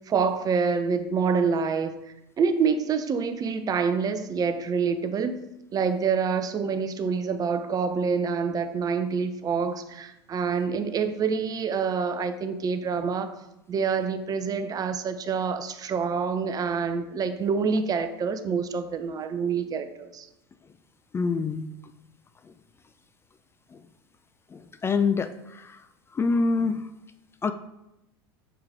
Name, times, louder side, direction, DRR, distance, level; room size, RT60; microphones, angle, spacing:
voice 1, 0.1-2.0 2.4-5.4 5.7-13.3 13.7-20.3, right 5 dB, 30° right, 10 dB, 0.6 m, -26 dB
voice 2, 21.1-21.6 23.7-23.8 24.5-25.8 26.1-26.9 27.4-27.5, left 4 dB, 20° left, 9 dB, 0.4 m, -26 dB
6.9 x 4.7 x 3.6 m, 0.89 s
hypercardioid pair, 85°, 13 cm